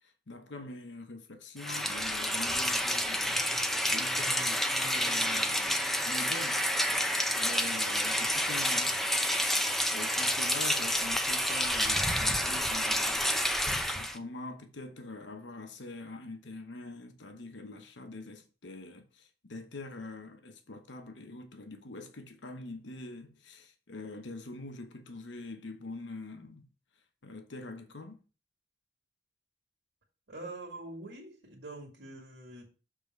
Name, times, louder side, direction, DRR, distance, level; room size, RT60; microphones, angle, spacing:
voice 1, 0.0-6.6 7.4-9.0 9.9-13.3 13.9-26.7 27.2-28.2, left 2 dB, 85° left, 1.0 m, -44 dB
Rain, 1.6-14.2, equal, ahead, 0.6 m, -29 dB
voice 2, 30.3-32.7, right 2 dB, 75° right, 2.0 m, -44 dB
7.0 x 3.7 x 5.3 m
head